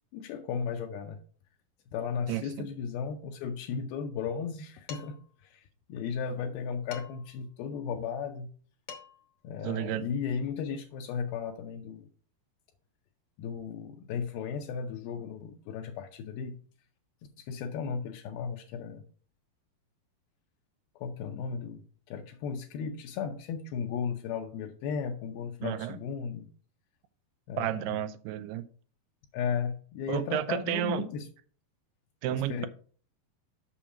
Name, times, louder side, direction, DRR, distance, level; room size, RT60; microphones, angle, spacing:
voice 1, 0.1-1.2 1.9-8.5 9.4-12.1 13.4-16.6 17.4-19.0 21.0-21.8 22.1-26.5 27.5-28.0 29.3-31.3 32.3-32.7, left 6 dB, 80° left, 2.5 m, -35 dB
voice 2, 2.3-2.7 9.6-10.1 25.6-26.0 27.6-28.7 30.1-31.1 32.2-32.7, right 13 dB, 90° right, 2.6 m, -32 dB
Dishes pots and pans, 4.9-5.3 6.9-7.4 8.5-8.6 8.9-9.3, left 6 dB, 60° left, 1.6 m, -45 dB
7.1 x 6.1 x 4.9 m
omnidirectional pair, 4.6 m